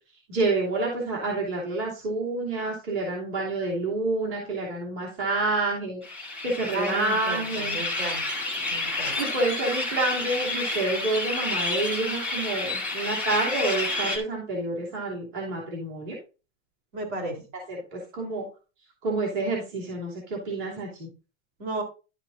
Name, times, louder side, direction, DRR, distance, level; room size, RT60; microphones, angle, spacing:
voice 1, 0.3-6.0 6.4-7.8 9.2-16.2 17.9-18.5 19.0-21.1, right 2 dB, 40° right, -3 dB, 2.9 m, -28 dB
sound 1, 6.0-14.2, left 2 dB, 5° right, 1.2 m, -30 dB
voice 2, 6.7-8.2 8.7-9.2 16.9-17.4 21.6-21.8, right 2 dB, 65° right, 2 dB, 3.7 m, -33 dB
11.5 x 7.3 x 2.6 m, 0.32 s
supercardioid pair, 175°, 39 cm